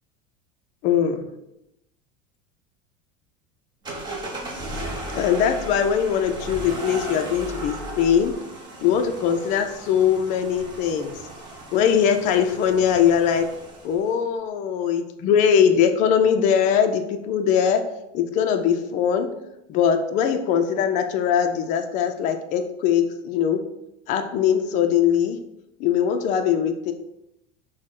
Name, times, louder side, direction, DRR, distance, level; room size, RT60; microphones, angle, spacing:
voice 1, 0.8-1.2 5.1-8.3 8.8-11.2 11.7-13.5 13.8-17.8 18.1-19.3 19.7-23.6 24.1-25.4 25.8-26.9, left 8 dB, 35° left, 6 dB, 0.4 m, -21 dB
sound 1, 3.8-14.1, right 1 dB, 20° right, 0.7 m, -36 dB
6.1 x 2.1 x 3.7 m, 0.87 s
cardioid pair, 170°, 21 cm